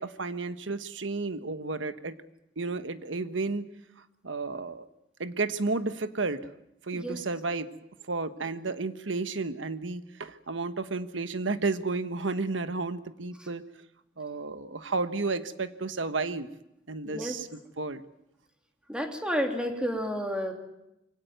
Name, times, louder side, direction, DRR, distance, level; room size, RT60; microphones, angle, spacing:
voice 1, 0.0-2.2 2.6-3.7 4.2-4.9 5.2-6.4 6.8-7.7 8.1-13.6 14.2-16.5 16.9-18.0, right 3 dB, 80° right, 11 dB, 1.3 m, -32 dB
voice 2, 18.9-20.5, equal, 5° right, 3 dB, 3.1 m, -30 dB
24.0 x 17.0 x 9.4 m, 0.87 s
head